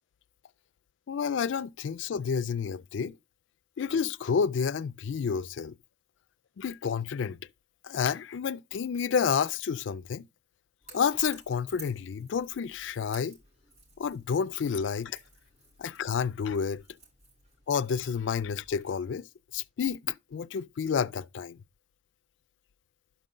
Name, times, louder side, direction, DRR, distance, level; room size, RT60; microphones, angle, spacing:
voice 1, 1.1-3.2 3.8-5.8 6.6-7.4 7.8-10.3 10.9-13.4 14.0-15.2 15.8-16.8 17.7-19.3 19.5-21.6, left 6 dB, 80° left, 0.4 m, -30 dB
Crackle / Crack, 10.8-18.9, right 3 dB, 35° right, 7.0 m, -55 dB
12.0 x 5.5 x 3.8 m
head